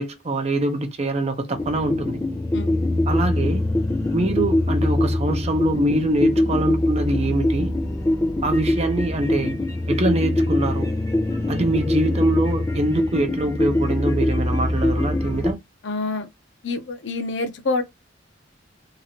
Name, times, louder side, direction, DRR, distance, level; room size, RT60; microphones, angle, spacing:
voice 1, 0.0-2.2 3.1-3.7 4.1-7.7 8.4-9.5 9.9-10.9 11.5-15.6, right 2 dB, 35° right, 0.6 m, -24 dB
sound 1, 1.5-15.5, left 1 dB, 15° left, 0.7 m, -23 dB
voice 2, 15.8-16.3 16.6-17.8, left 3 dB, 70° left, 0.7 m, -26 dB
2.9 x 2.4 x 2.8 m
head